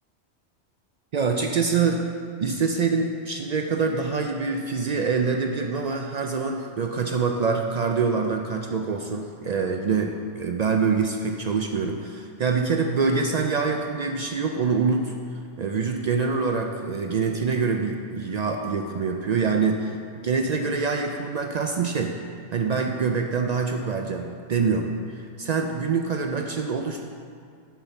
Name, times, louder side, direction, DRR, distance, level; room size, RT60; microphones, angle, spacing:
voice 1, 1.1-2.0 2.4-15.2 15.6-20.0 20.2-22.2 22.5-27.0, right 5 dB, 85° right, 3 dB, 0.3 m, -25 dB
6.8 x 5.8 x 6.9 m, 2.3 s
omnidirectional pair, 1.3 m